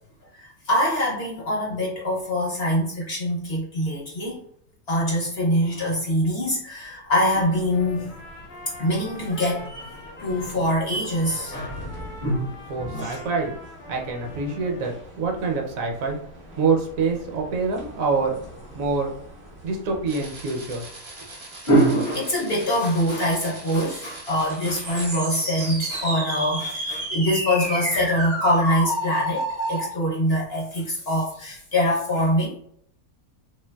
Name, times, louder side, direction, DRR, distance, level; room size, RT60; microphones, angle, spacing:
voice 1, 0.3-4.4 4.9-8.2 8.8-9.7 10.2-11.8 12.2-12.5 12.9-13.2 21.7-32.6, equal, 50° left, -4 dB, 0.8 m, -24 dB
sound 1, 7.1-20.6, right 1 dB, 15° left, 0.5 m, -43 dB
Trumpet, 7.7-10.6 10.9-15.0, left 2 dB, 65° left, 0.5 m, -43 dB
voice 2, 12.7-13.6 13.9-16.2 16.6-18.4 18.7-19.1 19.6-20.9, right 4 dB, 70° right, 1 dB, 1.0 m, -25 dB
sound 2, 20.1-29.9, right 1 dB, 45° right, 0.3 m, -31 dB
3.1 x 2.5 x 2.2 m, 0.66 s
omnidirectional pair, 1.6 m